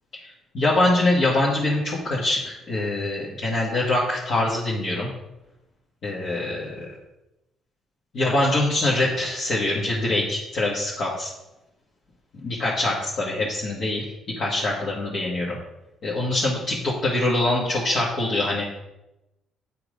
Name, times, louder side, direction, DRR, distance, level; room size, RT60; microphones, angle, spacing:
voice 1, 0.5-5.1 6.0-6.9 8.1-11.3 12.4-14.0 14.4-15.6 16.0-18.6, left 2 dB, 55° left, -5 dB, 1.7 m, -24 dB
8.9 x 4.5 x 5.1 m, 0.93 s
cardioid pair, 120°, 0 cm